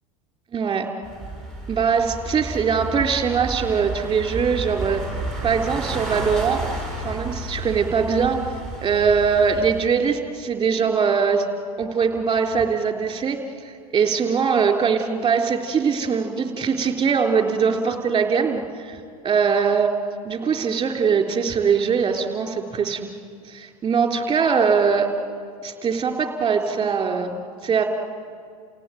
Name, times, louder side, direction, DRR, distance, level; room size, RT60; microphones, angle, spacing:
voice 1, 0.5-0.9 1.7-5.0 5.4-6.6 7.0-8.4 8.8-11.4 11.8-13.4 13.9-19.0 19.2-19.9 20.3-23.1 23.5-25.1 25.6-27.8, right 6 dB, 25° right, 5 dB, 3.7 m, -21 dB
sound 1, 1.0-9.9, right 2 dB, 5° left, 7.2 m, -32 dB
29.5 x 17.5 x 9.3 m, 2.2 s
supercardioid pair, 110°, 19 cm